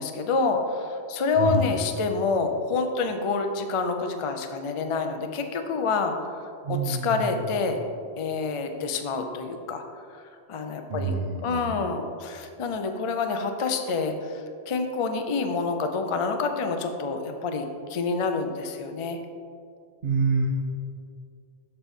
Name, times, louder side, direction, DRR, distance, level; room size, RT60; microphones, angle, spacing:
voice 1, 0.0-6.1 6.7-7.8 8.2-9.8 10.5-11.1 11.4-19.2, left 4 dB, 50° left, 5 dB, 0.3 m, -27 dB
voice 2, 1.4-1.7 6.6-7.5 10.9-11.8 20.0-20.5, right 3 dB, 55° right, -2 dB, 0.9 m, -27 dB
6.7 x 5.7 x 3.5 m, 2.4 s
omnidirectional pair, 1.2 m